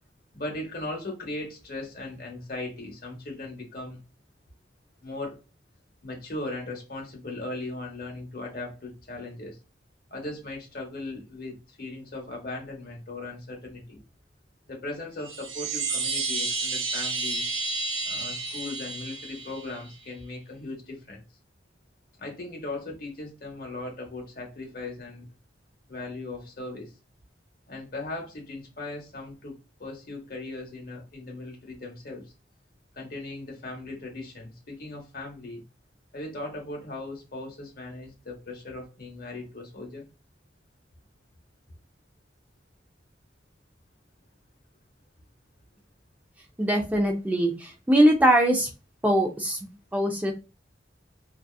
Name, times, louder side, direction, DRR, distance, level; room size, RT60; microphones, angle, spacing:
voice 1, 0.3-4.0 5.0-5.4 6.0-9.6 10.1-14.0 14.7-17.4 18.0-21.2 22.2-25.3 25.9-26.9 27.7-32.3 32.9-35.6 36.1-40.1, left 2 dB, 55° left, 1.0 m, -38 dB
Chime, 15.2-19.9, right 3 dB, 90° right, 0.6 m, -31 dB
voice 2, 46.6-48.7 49.0-49.6 49.9-50.3, right 1 dB, 10° right, 0.3 m, -22 dB
2.7 x 2.3 x 2.2 m
head